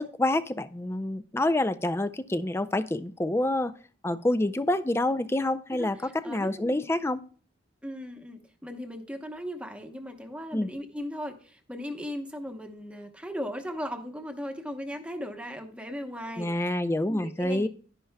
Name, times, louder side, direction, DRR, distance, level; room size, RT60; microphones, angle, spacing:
voice 1, 0.0-3.7 4.0-7.2 10.5-10.7 16.4-17.7, left 1 dB, 10° left, 13 dB, 0.4 m, -27 dB
voice 2, 5.7-6.8 7.8-16.6 17.1-17.7, equal, 5° right, 5 dB, 0.9 m, -37 dB
11.0 x 10.0 x 2.2 m, 0.43 s
head